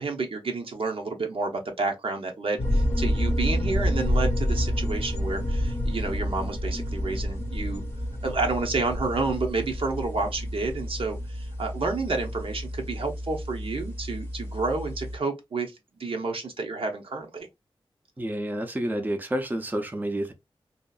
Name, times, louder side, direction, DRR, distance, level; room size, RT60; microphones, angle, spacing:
voice 1, 0.0-7.8 8.2-17.5, right 3 dB, 70° right, 0.7 m, -30 dB
sound 1, 2.6-15.2, equal, 25° left, 0.7 m, -29 dB
voice 2, 18.2-20.3, right 1 dB, 20° right, 0.5 m, -29 dB
2.7 x 2.4 x 2.3 m
wide cardioid pair, 75°, 10 cm